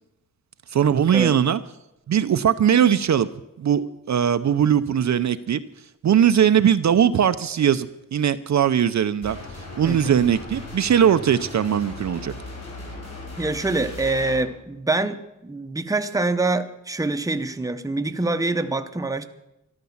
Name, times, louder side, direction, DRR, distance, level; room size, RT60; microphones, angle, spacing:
voice 1, 0.7-1.6 2.1-3.3 3.6-5.6 6.0-9.4 9.8-12.3, right 9 dB, 60° right, 12 dB, 0.6 m, -20 dB
sound 1, 9.2-14.4, left 2 dB, 50° left, 6.4 m, -37 dB
voice 2, 9.8-10.1 13.4-19.3, right 2 dB, 10° right, 9 dB, 0.8 m, -25 dB
13.5 x 12.0 x 7.2 m, 0.91 s
wide cardioid pair, 145°, 33 cm